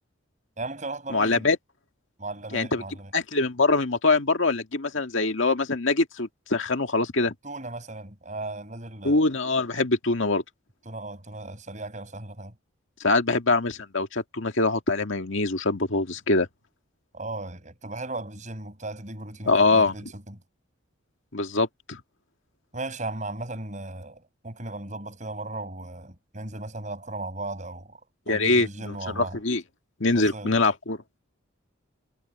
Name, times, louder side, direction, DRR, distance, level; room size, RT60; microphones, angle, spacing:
voice 1, 0.6-1.5 2.2-3.1 7.4-9.2 10.9-12.5 17.1-20.4 22.7-28.0 28.3-29.4 30.1-30.6, right 2 dB, 35° right, 5.6 m, -36 dB
voice 2, 1.1-1.6 2.5-2.8 3.1-7.3 9.0-10.4 13.0-16.5 19.5-19.9 21.3-22.0 28.3-29.6 30.0-31.0, left 3 dB, 65° left, 1.9 m, -23 dB
head